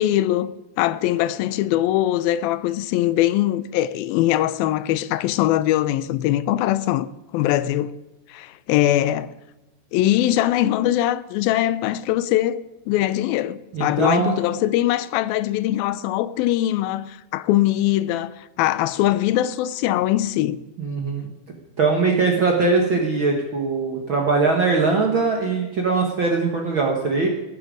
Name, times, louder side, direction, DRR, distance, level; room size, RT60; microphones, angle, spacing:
voice 1, 0.0-7.1 7.3-8.0 8.3-9.3 9.9-20.6, left 13 dB, 85° left, 2.4 m, -22 dB
voice 2, 13.7-14.4 20.8-21.3 21.8-27.3, right 4 dB, 55° right, 1.4 m, -21 dB
18.5 x 9.2 x 5.0 m
omnidirectional pair, 4.3 m